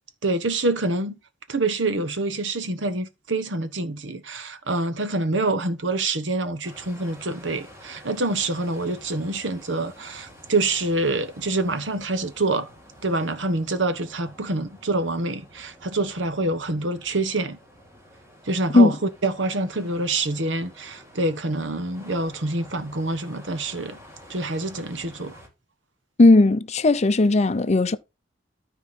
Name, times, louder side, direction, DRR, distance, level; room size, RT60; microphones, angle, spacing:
voice 1, 0.2-1.2 1.5-12.7 13.0-17.6 18.5-18.9 19.2-24.0 24.3-25.4, right 2 dB, 80° right, 1.1 m, -26 dB
sound 1, 6.6-25.5, equal, 15° right, 2.3 m, -49 dB
voice 2, 26.2-28.0, left 2 dB, 35° left, 0.5 m, -16 dB
13.0 x 4.7 x 4.2 m
head